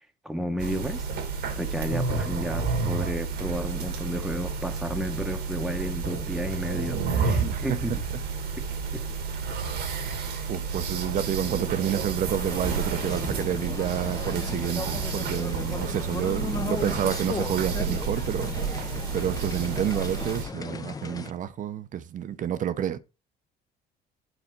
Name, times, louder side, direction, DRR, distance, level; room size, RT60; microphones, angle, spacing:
voice 1, 0.2-1.1 1.5-8.0 8.9-9.0, equal, ahead, 0.9 m, -32 dB
sound 1, 0.6-20.4, right 5 dB, 75° right, 1.5 m, -30 dB
voice 2, 7.4-7.8 10.1-23.0, right 9 dB, 50° right, 0.7 m, -29 dB
sound 2, 12.3-21.3, left 4 dB, 20° left, 0.6 m, -36 dB
9.1 x 4.1 x 4.4 m
cardioid pair, 110°, 17 cm